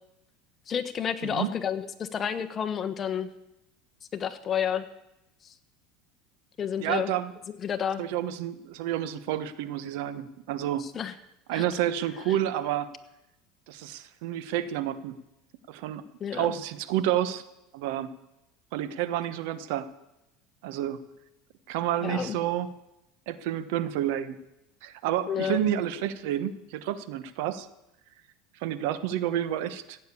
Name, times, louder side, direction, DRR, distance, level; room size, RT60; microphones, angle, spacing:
voice 1, 0.7-3.3 4.1-4.9 5.4-5.5 6.6-7.1 7.6-8.0 10.8-11.1 11.5-11.6 12.3-12.4 16.2-16.5 22.0-22.4 25.3-25.6, left 8 dB, 30° left, 8 dB, 1.2 m, -30 dB
voice 2, 6.8-7.3 8.0-10.9 11.5-12.9 13.7-15.2 15.7-16.0 16.3-17.4 17.7-18.1 18.7-19.9 20.6-21.0 21.7-22.7 23.3-24.4 24.8-27.7 28.6-30.0, right 11 dB, 70° right, 14 dB, 1.1 m, -29 dB
15.5 x 9.2 x 8.4 m, 0.90 s
supercardioid pair, 130°, 0 cm